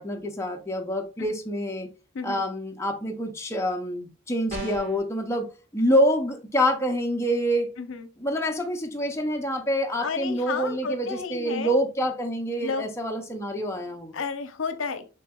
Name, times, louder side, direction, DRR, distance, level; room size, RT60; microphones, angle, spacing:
voice 1, 0.0-1.9 2.2-7.7 8.2-14.2, equal, 15° left, 0.6 m, -26 dB
sound 1, 4.5-5.0, right 1 dB, 35° right, 1.7 m, -34 dB
voice 2, 7.8-8.1 10.0-11.7 12.6-12.9 14.1-15.1, left 5 dB, 70° left, 0.7 m, -32 dB
6.4 x 3.6 x 2.3 m
head